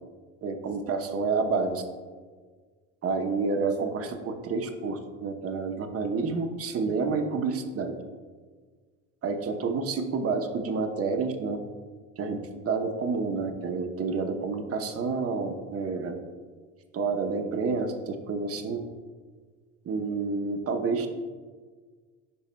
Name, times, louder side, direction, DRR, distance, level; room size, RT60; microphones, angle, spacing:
voice 1, 0.4-1.8 3.0-7.9 9.2-11.6 12.2-12.4 12.7-16.1 16.9-18.8 19.8-21.2, right 4 dB, 40° right, 6 dB, 0.8 m, -29 dB
11.0 x 4.0 x 2.2 m, 1.5 s
supercardioid pair, 90°, 36 cm